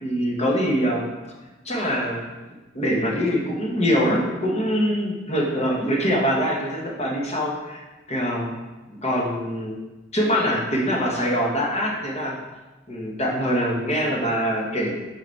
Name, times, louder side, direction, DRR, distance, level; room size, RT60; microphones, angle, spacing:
voice 1, 0.0-1.1 1.6-2.3 2.7-8.6 9.0-9.8 10.1-12.3 12.9-14.9, equal, 35° left, -2 dB, 1.2 m, -24 dB
5.1 x 5.1 x 4.6 m, 1.1 s
head